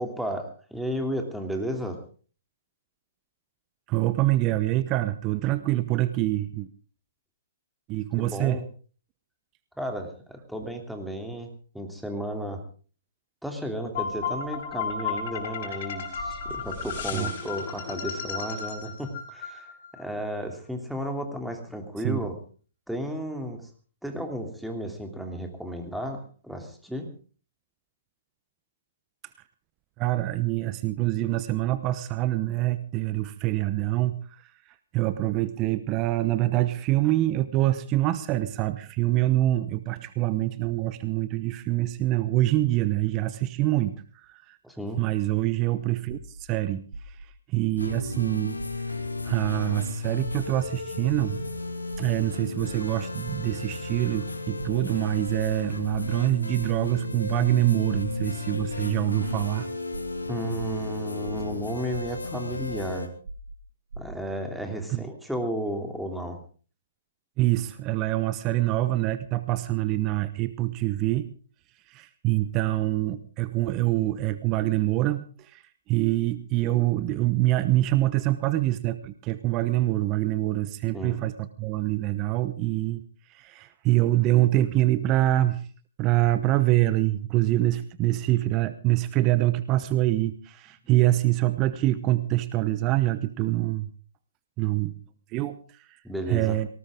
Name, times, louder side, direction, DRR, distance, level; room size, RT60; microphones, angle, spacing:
voice 1, 0.0-2.0 8.2-8.6 9.8-12.6 13.4-22.4 22.9-23.7 24.0-27.1 44.6-45.0 60.3-63.1 64.0-66.4 80.9-81.2 96.0-96.6, equal, ahead, 3 dB, 3.0 m, -33 dB
voice 2, 3.9-6.7 7.9-8.6 17.1-17.3 22.0-22.2 30.0-34.5 34.9-44.6 45.0-47.2 47.5-48.6 49.2-51.4 52.0-59.7 64.9-65.0 67.4-71.3 71.9-75.6 75.9-83.0 83.3-85.6 86.0-93.9 94.6-94.9 95.3-95.9 96.3-96.7, right 16 dB, 30° right, 13 dB, 0.9 m, -25 dB
sound 1, 13.9-20.0, left 5 dB, 50° left, 5.5 m, -33 dB
sound 2, 46.1-46.4 46.9-47.2 47.8-48.1 48.6-48.9 49.4-49.8 50.2-50.6 51.1-51.4 51.9-52.2 52.6-52.9 53.3-53.5 53.9-54.2 54.6-54.9 55.3-55.5 55.9-56.2 56.6-56.9 57.3-57.6 57.9-58.2 58.6-58.9 59.2-59.6 59.9-60.2 60.6-60.9 61.2-61.6 61.9-62.2 62.6-62.9 63.3-63.6 63.9-64.2, right 2 dB, 70° right, 2.2 m, -40 dB
sound 3, 47.8-63.1, left 3 dB, 85° left, 2.6 m, -34 dB
19.0 x 18.5 x 3.7 m, 0.40 s
figure-of-eight pair, 125°, 0 cm